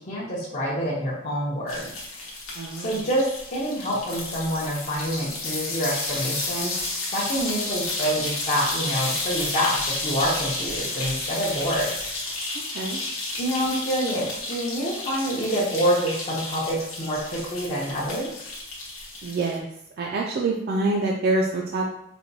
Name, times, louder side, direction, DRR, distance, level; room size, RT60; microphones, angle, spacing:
voice 1, 0.1-1.9 2.8-3.2 3.5-6.7 7.1-11.9 13.3-18.3, equal, 40° left, -8 dB, 0.7 m, -27 dB
sound 1, 1.7-19.6, left 2 dB, 80° left, 0.9 m, -32 dB
voice 2, 2.6-3.0 12.7-13.0 19.2-19.7 20.0-21.9, right 2 dB, 50° right, -1 dB, 0.3 m, -26 dB
4.2 x 2.2 x 2.7 m, 0.77 s
head